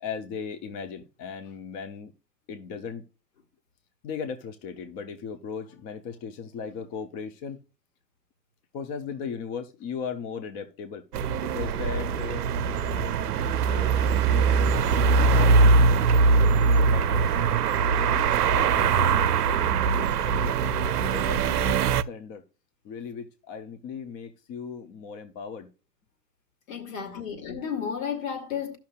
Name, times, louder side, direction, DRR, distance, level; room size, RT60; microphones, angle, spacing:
voice 1, 0.0-2.1 2.5-3.0 4.0-7.6 8.7-11.0 11.4-12.5 13.6-16.1 16.6-17.5 18.0-20.6 21.0-22.4 22.8-25.7 27.1-27.3, left 6 dB, 20° left, 0.5 m, -38 dB
sound 1, 11.1-22.0, right 4 dB, 65° right, 0.6 m, -22 dB
voice 2, 26.7-28.8, left 7 dB, 55° left, 2.3 m, -32 dB
15.5 x 5.8 x 2.3 m
figure-of-eight pair, 100°, 49 cm